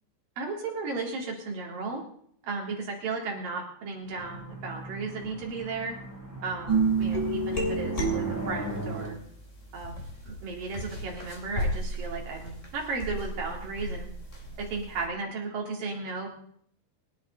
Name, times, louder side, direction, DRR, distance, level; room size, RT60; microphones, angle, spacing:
voice 1, 0.4-2.0 2.4-6.0 6.4-9.2 9.7-10.0 10.3-14.1 14.6-16.3, right 4 dB, 55° right, -1 dB, 5.1 m, -35 dB
sound 1, 4.1-9.1, right 1 dB, 5° right, 7.7 m, -38 dB
sound 2, 6.7-9.1 9.8-15.0, right 3 dB, 20° left, 3.0 m, -30 dB
28.0 x 10.5 x 4.2 m, 0.63 s
omnidirectional pair, 5.1 m